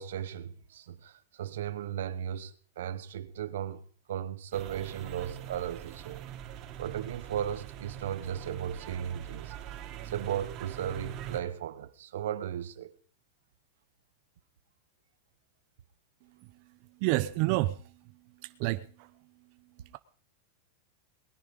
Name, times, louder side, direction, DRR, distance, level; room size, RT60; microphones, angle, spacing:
voice 1, 0.0-3.8 4.1-6.2 6.8-9.5 10.0-12.9, right 10 dB, 85° right, 1.2 m, -36 dB
sound 1, 4.5-11.4, right 10 dB, 35° right, 3.5 m, -43 dB
voice 2, 17.0-18.0 18.4-19.1, right 19 dB, 50° right, 0.8 m, -29 dB
20.0 x 10.5 x 5.4 m
supercardioid pair, 135°, 0 cm